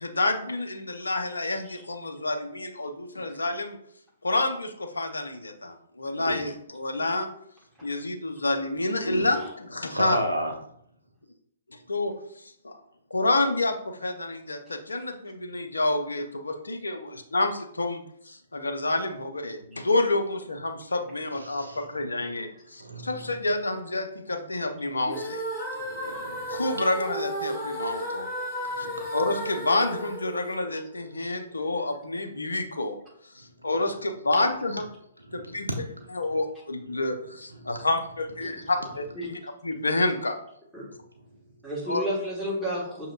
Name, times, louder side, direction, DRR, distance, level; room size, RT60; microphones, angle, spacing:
voice 1, 0.0-3.8 4.2-7.3 7.8-10.2 11.7-12.8 13.1-17.0 17.3-18.0 18.3-25.4 26.5-28.3 28.8-28.9 29.1-33.0 33.3-34.9 35.3-35.7 36.1-40.4 41.9-42.0, left 2 dB, 75° left, 6 dB, 0.6 m, -28 dB
voice 2, 9.0-9.3 9.9-10.6 21.3-21.8 22.1-22.3 22.8-23.4 25.8-26.8 28.6-29.4 33.9-34.0 34.8-34.9 35.2-36.4 36.8-39.3, right 1 dB, 85° right, 2 dB, 0.6 m, -35 dB
sound 1, 25.1-31.2, equal, 20° left, 1.2 m, -34 dB
voice 3, 41.6-43.1, equal, 5° right, -7 dB, 1.6 m, -31 dB
5.9 x 2.8 x 2.4 m, 0.69 s
figure-of-eight pair, 120°, 0 cm